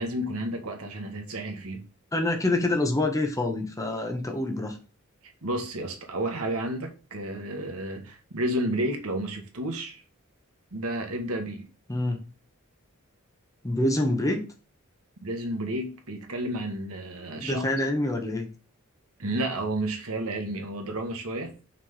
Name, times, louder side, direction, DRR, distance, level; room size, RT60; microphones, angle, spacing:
voice 1, 0.0-1.8 5.2-10.0 10.7-11.7 15.2-17.7 19.2-21.5, right 1 dB, 85° right, 1.3 m, -31 dB
voice 2, 2.1-4.8 11.9-12.2 13.6-14.4 17.4-18.5, left 1 dB, 15° left, 1.1 m, -26 dB
5.8 x 3.4 x 5.6 m
head